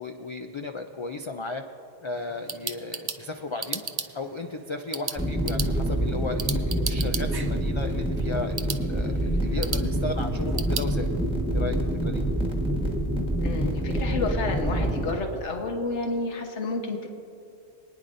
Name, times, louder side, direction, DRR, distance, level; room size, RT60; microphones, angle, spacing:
voice 1, 0.0-1.6 2.0-3.8 4.1-11.1 11.5-11.8 12.0-12.2, left 3 dB, 50° left, 5 dB, 0.3 m, -35 dB
sound 1, 2.1-10.9, right 4 dB, 40° right, 0.3 m, -37 dB
sound 2, 5.2-15.1, right 1 dB, 5° right, 1.3 m, -26 dB
voice 2, 13.4-17.1, left 3 dB, 85° left, 3 dB, 1.5 m, -30 dB
24.0 x 9.8 x 2.6 m, 2.7 s
omnidirectional pair, 1.2 m